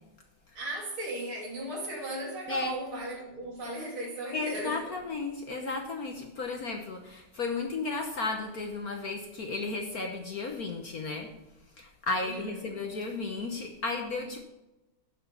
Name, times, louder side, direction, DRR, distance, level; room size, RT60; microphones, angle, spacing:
voice 1, 0.6-4.9 12.2-12.8, right 1 dB, 70° right, -2 dB, 3.7 m, -37 dB
voice 2, 4.3-11.3 11.8-14.4, left 3 dB, 50° left, 4 dB, 1.3 m, -34 dB
11.0 x 6.8 x 5.4 m, 0.99 s
omnidirectional pair, 2.4 m